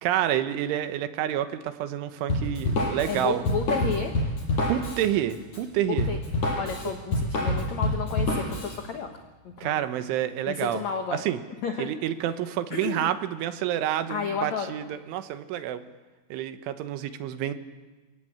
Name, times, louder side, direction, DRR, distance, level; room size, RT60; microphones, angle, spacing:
voice 1, 0.0-3.4 4.7-6.1 9.6-10.8 11.1-11.4 11.8-15.8 16.3-17.5, right 11 dB, 80° right, 10 dB, 3.5 m, -28 dB
Drum kit, 2.3-8.8, left 1 dB, 35° left, 7.8 m, -27 dB
voice 2, 3.1-4.1 6.1-6.2 6.6-9.1 9.4-9.8 10.5-11.2 11.6-11.9 12.7-13.1 14.1-14.7, left 6 dB, 85° left, 5 dB, 1.5 m, -32 dB
28.5 x 18.0 x 8.8 m, 1.3 s
omnidirectional pair, 5.6 m